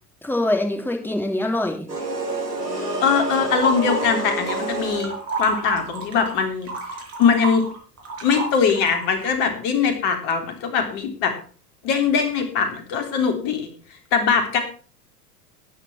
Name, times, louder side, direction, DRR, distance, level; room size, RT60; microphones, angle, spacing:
voice 1, 0.2-1.9, left 1 dB, 5° left, 3 dB, 2.9 m, -24 dB
sound 1, 1.9-5.4, right 2 dB, 80° right, 4.3 m, -28 dB
voice 2, 3.0-6.7 7.2-7.7 8.2-11.3 11.8-13.7 14.1-14.6, left 6 dB, 45° left, 5 dB, 3.7 m, -21 dB
sound 2, 3.1-4.6 4.9-9.4, right 3 dB, 30° right, 5.2 m, -31 dB
13.0 x 10.0 x 4.6 m, 0.39 s
figure-of-eight pair, 90°, 47 cm